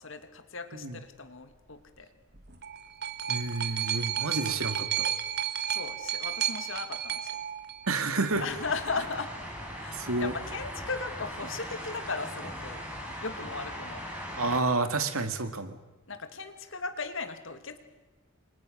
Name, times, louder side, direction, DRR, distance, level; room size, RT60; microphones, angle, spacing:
voice 1, 0.0-2.1 5.7-7.4 8.4-9.3 9.7-12.8 13.2-14.1 16.1-17.8, left 4 dB, 65° left, 8 dB, 2.6 m, -37 dB
sound 1, 2.3-8.3 9.2-9.3, right 9 dB, 50° right, 1.7 m, -32 dB
voice 2, 3.3-5.1 7.9-8.4 9.9-10.3 14.4-15.8, right 3 dB, 85° right, 10 dB, 2.2 m, -30 dB
sound 2, 8.3-14.6, equal, 5° right, 6.3 m, -39 dB
30.0 x 25.0 x 6.6 m, 1.1 s
head